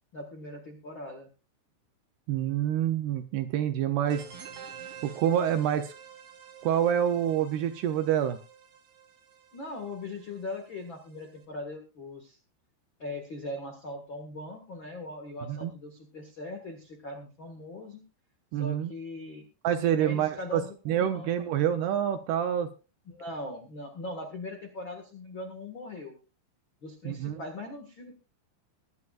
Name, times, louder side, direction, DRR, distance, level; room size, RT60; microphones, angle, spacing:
voice 1, 0.1-1.3 9.5-12.4 13.0-18.0 18.5-19.4 20.0-21.3 23.0-26.1 26.8-28.1, left 2 dB, 85° left, 3 dB, 1.0 m, -40 dB
voice 2, 2.3-4.2 5.0-5.9 6.6-8.4 15.5-15.7 18.5-18.9 19.6-20.6 20.9-22.7 27.1-27.4, right 10 dB, 75° right, 7 dB, 2.5 m, -27 dB
sound 1, 4.1-11.4, right 8 dB, 55° right, 2.4 m, -49 dB
21.5 x 11.0 x 2.5 m, 0.31 s
omnidirectional pair, 5.4 m